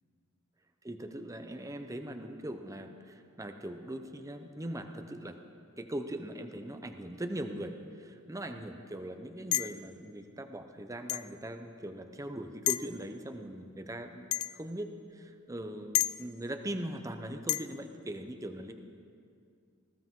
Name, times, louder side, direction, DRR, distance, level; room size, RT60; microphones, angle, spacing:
voice 1, 0.8-5.4 5.8-18.7, right 1 dB, 15° right, 6 dB, 0.7 m, -40 dB
sound 1, 9.5-9.9 11.1-11.3 12.7-12.9 14.3-14.6 15.9-16.1 17.5-17.7, left 16 dB, 75° left, 0.4 m, -30 dB
19.5 x 15.5 x 3.7 m, 2.3 s
head